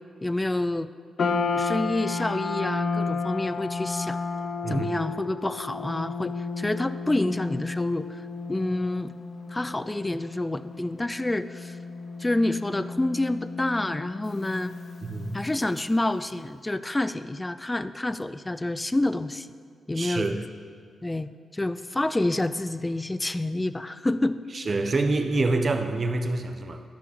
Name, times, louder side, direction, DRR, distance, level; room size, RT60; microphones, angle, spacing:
voice 1, 0.2-0.9 1.5-4.2 4.7-8.2 8.5-9.1 9.5-11.8 12.2-14.7 15.3-19.5 19.9-20.3 21.0-24.4, left 2 dB, 20° left, 13 dB, 0.5 m, -28 dB
sound 1, 1.2-15.6, left 4 dB, 55° left, 1.0 m, -32 dB
voice 2, 15.0-15.4 19.9-20.4 24.5-26.8, right 2 dB, 45° right, 6 dB, 1.1 m, -26 dB
13.5 x 6.1 x 8.7 m, 2.1 s
supercardioid pair, 50°, 0 cm